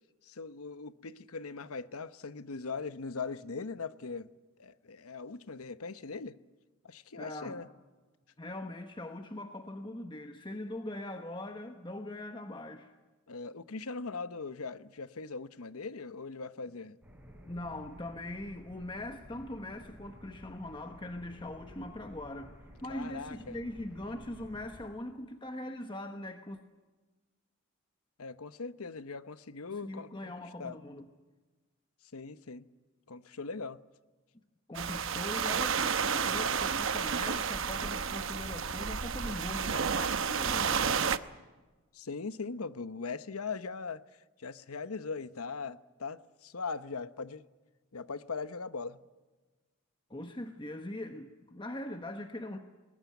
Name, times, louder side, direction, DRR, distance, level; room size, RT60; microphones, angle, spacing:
voice 1, 0.2-4.3 4.6-6.4 6.8-7.7 13.3-17.0 22.9-23.6 28.2-30.3 30.6-30.8 32.1-32.7 33.1-33.8 41.9-44.0 44.4-47.4 47.9-49.0, left 4 dB, 85° left, 0.9 m, -40 dB
voice 2, 7.2-7.6 8.4-12.9 17.4-22.6 22.8-26.6 29.7-31.1 34.7-41.2 50.1-52.6, left 1 dB, 20° left, 1.1 m, -41 dB
sound 1, 17.0-24.8, equal, 5° right, 5.5 m, -53 dB
sound 2, 34.7-41.2, right 6 dB, 60° right, 0.9 m, -31 dB
21.0 x 20.0 x 9.3 m
head